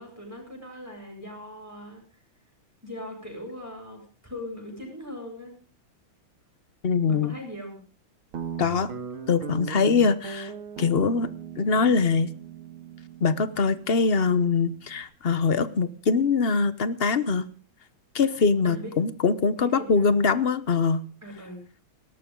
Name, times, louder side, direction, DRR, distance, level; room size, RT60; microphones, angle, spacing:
voice 1, 0.0-2.0 2.8-5.5 7.1-7.8 18.6-18.9 19.6-20.2 21.2-21.6, left 1 dB, 5° right, 0 dB, 8.0 m, -40 dB
voice 2, 6.8-7.3 8.6-8.9 9.3-10.5 10.8-11.3 11.6-12.3 13.2-17.5 18.1-21.0, left 5 dB, 45° left, 14 dB, 0.8 m, -23 dB
Guitar, 8.3-15.0, right 7 dB, 90° right, 2.7 m, -39 dB
20.0 x 18.0 x 3.8 m, 0.38 s
omnidirectional pair, 2.2 m